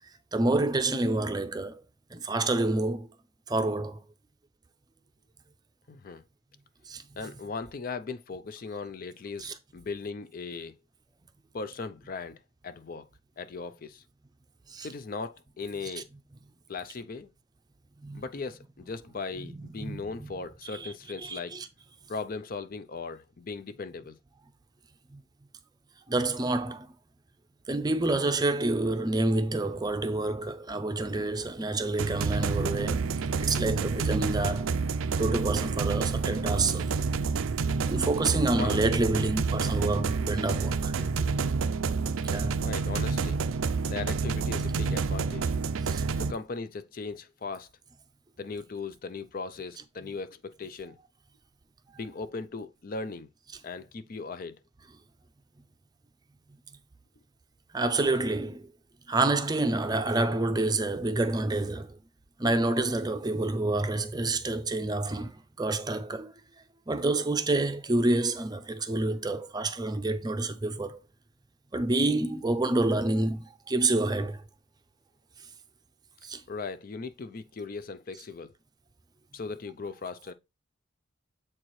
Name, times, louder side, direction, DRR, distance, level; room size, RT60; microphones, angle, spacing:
voice 1, 0.3-1.8 2.1-3.1 3.5-4.0 6.9-7.0 9.4-9.5 14.7-14.9 18.0-18.2 19.6-20.0 20.7-20.9 21.2-21.7 25.1-25.2 26.1-26.9 27.7-33.1 33.4-34.7 35.2-36.9 37.9-41.0 42.3-42.5 45.8-46.0 57.7-58.7 59.1-62.0 62.4-66.3 66.9-71.0 71.7-74.4 76.2-76.4, right 2 dB, 20° right, 0.5 m, -28 dB
voice 2, 5.9-6.2 7.2-10.7 11.5-13.1 13.4-14.0 14.8-16.1 16.7-17.3 18.1-21.6 22.1-24.2 38.6-38.8 41.0-41.3 42.6-43.4 43.9-45.5 46.2-47.7 48.4-51.0 52.0-53.3 53.6-54.6 76.5-78.5 79.3-80.3, left 4 dB, 45° left, 0.4 m, -38 dB
sound 1, 32.0-46.3, right 4 dB, 90° right, 0.5 m, -29 dB
7.6 x 4.4 x 3.1 m
head